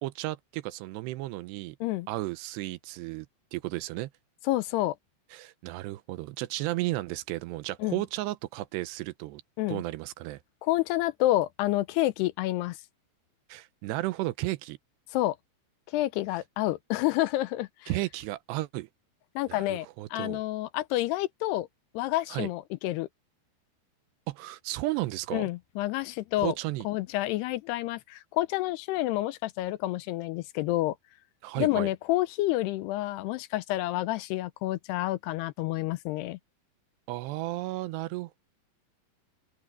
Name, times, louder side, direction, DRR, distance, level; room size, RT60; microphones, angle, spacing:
voice 1, 0.0-1.8 2.1-3.3 3.5-4.1 5.3-9.4 9.7-10.4 13.5-14.8 17.9-18.9 19.5-20.4 22.3-22.5 24.3-25.5 26.4-26.9 31.4-31.9 37.1-38.4, right 18 dB, 85° right, 2.8 m, -33 dB
voice 2, 4.5-5.0 7.8-8.0 9.6-9.8 10.6-12.8 15.1-15.4 15.9-17.9 19.4-21.7 21.9-23.1 25.3-26.5 26.8-31.0 31.6-36.4, left 16 dB, 85° left, 2.7 m, -29 dB
open air
omnidirectional pair, 4.9 m